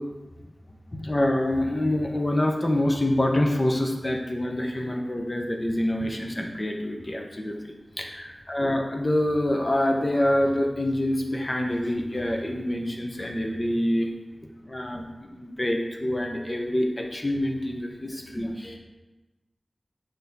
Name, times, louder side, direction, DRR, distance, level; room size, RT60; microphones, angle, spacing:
voice 1, 1.0-14.1 14.7-18.8, left 1 dB, 35° left, 2 dB, 1.0 m, -26 dB
7.0 x 3.1 x 5.3 m, 1.1 s
wide cardioid pair, 55°, 0 cm